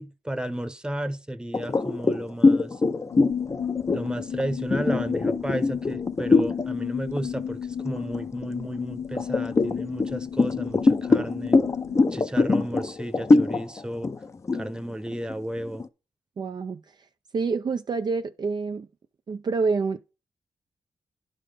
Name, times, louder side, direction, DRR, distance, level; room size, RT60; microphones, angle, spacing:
voice 1, 0.0-2.8 3.9-11.6 12.1-14.1 14.5-15.9, right 1 dB, 10° right, 0.9 m, -33 dB
sound 1, 1.5-6.7 7.1-7.4 7.8-8.6 9.2-15.9, left 3 dB, 30° left, 0.6 m, -23 dB
sound 2, 3.1-12.0, left 8 dB, 85° left, 0.8 m, -33 dB
voice 2, 16.4-16.8 17.3-18.9 19.3-20.1, right 4 dB, 45° right, 0.5 m, -27 dB
11.0 x 3.9 x 5.1 m
cardioid pair, 90°, 10 cm